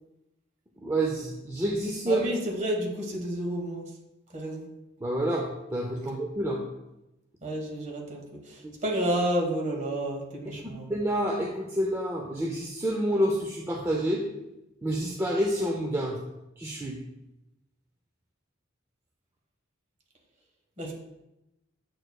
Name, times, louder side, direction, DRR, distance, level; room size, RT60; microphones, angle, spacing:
voice 1, 0.8-2.2 5.0-6.6 8.6-8.7 10.9-14.2 14.8-16.2 16.6-17.0, right 1 dB, 15° right, -1 dB, 0.5 m, -28 dB
voice 2, 2.1-3.8 4.3-4.7 7.4-10.9 20.8-20.9, right 1 dB, 35° right, -1 dB, 1.4 m, -30 dB
7.7 x 6.3 x 2.3 m, 0.93 s
head